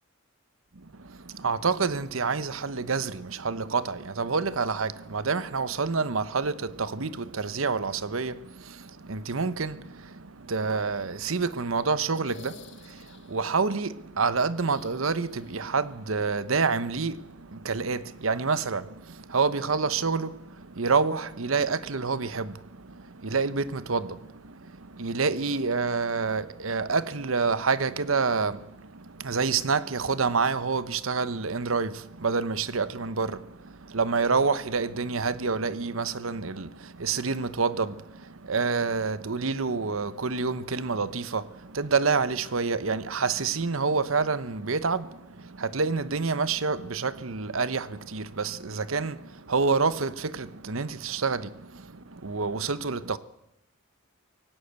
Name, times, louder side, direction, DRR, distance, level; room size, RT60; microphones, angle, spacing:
voice 1, 0.7-53.2, right 4 dB, 80° right, 1.0 m, -28 dB
sound 1, 12.1-13.5 14.6-15.8 16.1-16.2 17.8-17.9, left 5 dB, 65° left, 1.7 m, -51 dB
18.5 x 17.0 x 8.2 m
head